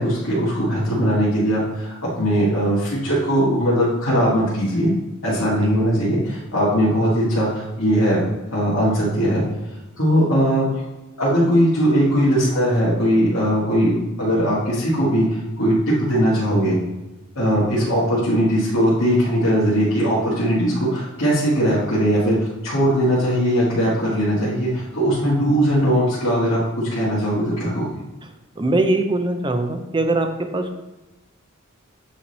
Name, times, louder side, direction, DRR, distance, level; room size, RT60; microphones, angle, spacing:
voice 1, 0.0-4.9 5.2-8.2 8.5-9.4 10.0-10.8 11.2-16.8 17.4-22.4 22.6-27.9, equal, 65° left, -10 dB, 1.7 m, -19 dB
voice 2, 28.6-30.3 30.5-30.8, right 2 dB, 20° right, 6 dB, 0.5 m, -21 dB
8.7 x 3.2 x 4.1 m, 1.0 s
head